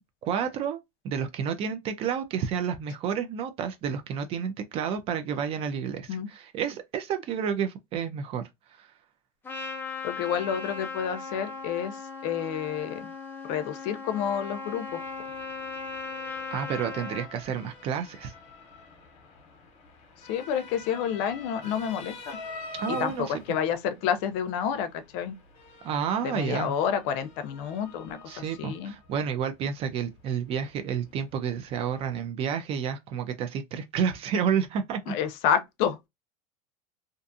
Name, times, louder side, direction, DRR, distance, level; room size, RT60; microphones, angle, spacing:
voice 1, 0.2-0.8 1.0-8.4 8.7-8.9 16.5-18.3 22.8-23.3 25.8-26.7 28.3-35.1, right 7 dB, 40° right, 0.4 m, -30 dB
Trumpet, 9.4-17.3, left 4 dB, 15° left, 0.5 m, -38 dB
voice 2, 10.0-13.1 13.4-15.0 20.3-22.4 22.9-25.3 26.2-28.9 35.1-36.1, left 8 dB, 65° left, 0.5 m, -29 dB
Motor vehicle (road) / Siren, 14.9-32.3, left 2 dB, 50° left, 0.9 m, -47 dB
2.5 x 2.3 x 2.6 m
cardioid pair, 145°, 15 cm